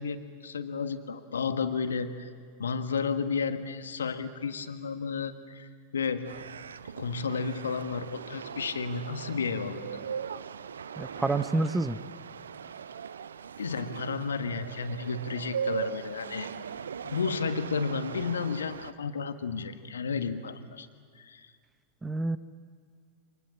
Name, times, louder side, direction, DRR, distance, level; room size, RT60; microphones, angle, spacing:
voice 1, 0.0-2.3 2.6-5.7 5.9-6.3 7.0-9.9 13.6-16.5 17.0-20.9 21.1-21.5, left 5 dB, 70° left, 9 dB, 1.6 m, -32 dB
sound 1, 6.2-18.9, right 7 dB, 70° right, 0.7 m, -39 dB
voice 2, 11.0-12.0 22.0-22.4, right 2 dB, 10° right, 13 dB, 1.0 m, -28 dB
30.0 x 27.0 x 7.4 m, 2.1 s
figure-of-eight pair, 90°, 0 cm